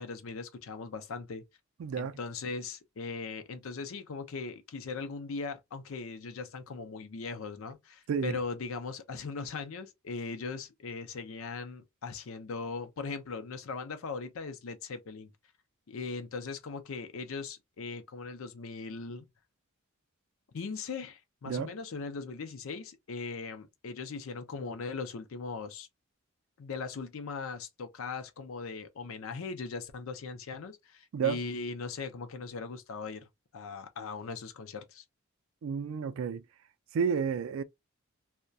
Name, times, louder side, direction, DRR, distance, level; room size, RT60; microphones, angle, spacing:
voice 1, 0.0-1.4 2.0-15.3 15.9-19.3 20.5-25.9 26.6-33.3 33.5-35.0, left 4 dB, 70° left, 0.5 m, -39 dB
voice 2, 1.8-2.2 8.1-8.4 21.5-21.7 31.1-31.4 35.6-36.4 36.9-37.6, right 6 dB, 70° right, 0.3 m, -31 dB
2.3 x 2.1 x 2.5 m
head